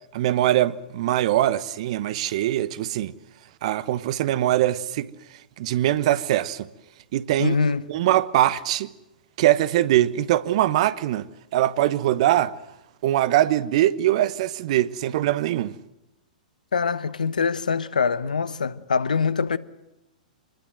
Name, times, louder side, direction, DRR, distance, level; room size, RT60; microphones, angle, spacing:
voice 1, 0.1-3.1 3.6-5.1 5.6-6.7 7.1-7.6 7.9-8.9 9.4-12.5 13.0-15.7, right 13 dB, 50° right, 1.2 m, -22 dB
voice 2, 7.4-7.9 16.7-19.6, left 5 dB, 75° left, 1.1 m, -24 dB
26.0 x 21.0 x 7.8 m
figure-of-eight pair, 105°, 4 cm